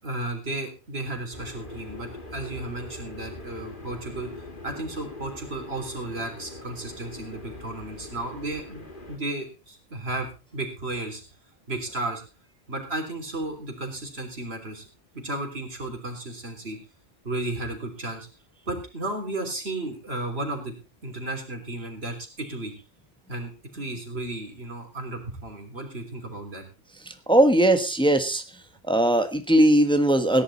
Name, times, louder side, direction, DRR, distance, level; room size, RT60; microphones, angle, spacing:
voice 1, 0.0-4.3 4.6-11.2 11.7-12.2 12.7-14.8 15.1-16.8 17.2-18.3 18.7-20.7 21.0-22.7 23.3-26.6, right 2 dB, 70° right, 3 dB, 3.7 m, -34 dB
sound 1, 1.3-9.2, left 2 dB, 50° left, 2.6 m, -42 dB
voice 2, 27.0-28.4 28.8-30.4, right 1 dB, 5° left, 7 dB, 1.3 m, -20 dB
17.5 x 10.5 x 4.2 m, 0.32 s
omnidirectional pair, 1.1 m